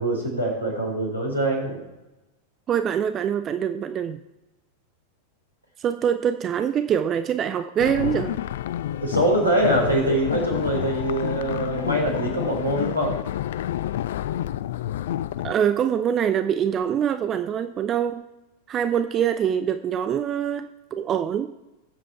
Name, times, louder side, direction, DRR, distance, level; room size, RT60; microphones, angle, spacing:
voice 1, 0.0-1.8 8.9-13.2, right 1 dB, 85° right, -1 dB, 4.2 m, -24 dB
voice 2, 2.7-4.2 5.8-8.4 15.4-18.3 18.7-21.5, right 8 dB, 30° right, 10 dB, 0.5 m, -24 dB
sound 1, 7.8-15.5, left 12 dB, 55° left, 0.3 m, -29 dB
19.5 x 7.6 x 4.5 m, 1.0 s
figure-of-eight pair, 90°, 0 cm